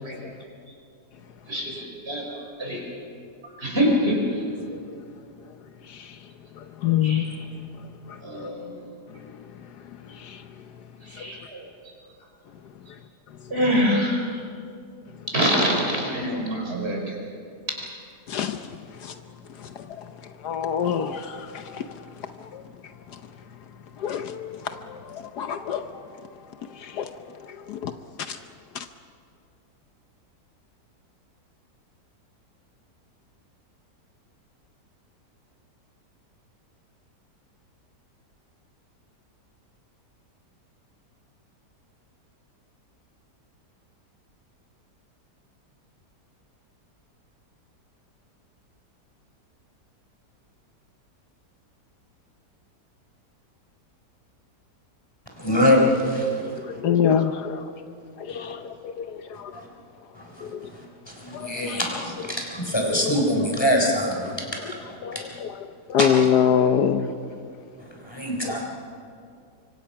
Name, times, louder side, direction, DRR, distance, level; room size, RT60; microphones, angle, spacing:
voice 1, 1.5-2.8 3.6-4.2 7.0-7.2 8.2-8.8 11.1-11.9 13.5-14.2 15.3-17.1, equal, 35° right, 4.8 m, -25 dB
voice 2, 5.9-6.2 6.6-7.3 8.1-8.5 9.2-9.5 9.9-10.4 11.2-11.3 18.3-19.2 19.5-20.1 20.4-22.6 23.1-23.2 24.0-26.0 26.7-27.9 28.3-28.4 28.7-28.9 56.4-57.7 58.2-59.5 60.4-60.7 61.3-61.8 62.9-63.5 64.6-64.7 65.0-67.1 68.4-68.6, left 8 dB, 70° left, 1.3 m, -27 dB
voice 3, 55.3-56.8 58.3-58.5 59.5-59.7 60.2-64.9 65.1-65.4 66.0-66.1 67.8-68.6, equal, 15° left, 4.0 m, -25 dB
25.0 x 24.5 x 5.8 m
omnidirectional pair, 1.8 m